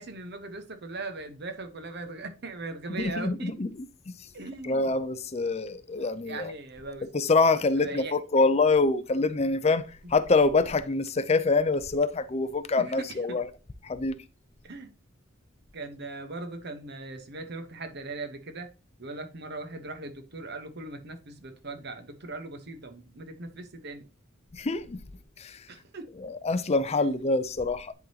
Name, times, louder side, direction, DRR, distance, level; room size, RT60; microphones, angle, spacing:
voice 1, 0.0-3.5 4.3-5.0 6.2-7.1 7.8-8.2 12.8-13.4 14.6-14.9 15.7-18.7 19.0-24.0 25.7-26.1 27.0-27.1, right 3 dB, 50° right, 1.1 m, -39 dB
voice 2, 3.0-3.7 4.6-6.5 7.1-13.5 13.8-14.2 24.5-25.0 25.4-25.6 26.2-27.9, left 3 dB, 30° left, 0.5 m, -25 dB
10.5 x 3.8 x 2.9 m
head